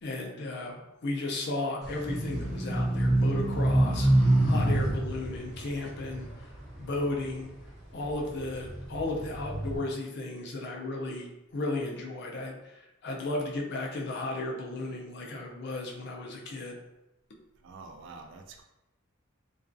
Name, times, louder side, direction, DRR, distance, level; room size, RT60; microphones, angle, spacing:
voice 1, 0.0-4.1 4.5-6.3 6.8-7.5 7.9-16.8, left 2 dB, 55° left, 0 dB, 0.4 m, -34 dB
sound 1, 1.8-7.4 7.9-9.8, right 1 dB, ahead, 0.7 m, -27 dB
voice 2, 17.6-18.6, right 4 dB, 60° right, 4 dB, 0.3 m, -47 dB
2.3 x 2.2 x 2.5 m, 0.92 s
head